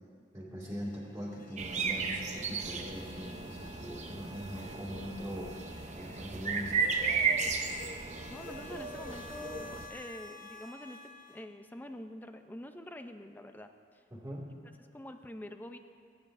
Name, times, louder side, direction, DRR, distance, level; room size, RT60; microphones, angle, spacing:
voice 1, 0.3-5.5 5.9-6.8 14.1-14.5, equal, 15° right, -6 dB, 2.1 m, -41 dB
sound 1, 0.6-11.4, left 2 dB, 45° left, 0.9 m, -52 dB
sound 2, 1.6-9.9, right 5 dB, 40° right, 0.6 m, -35 dB
voice 2, 8.3-14.0 14.8-15.8, left 1 dB, 10° left, 7 dB, 0.5 m, -46 dB
19.5 x 9.8 x 2.6 m, 2.2 s
head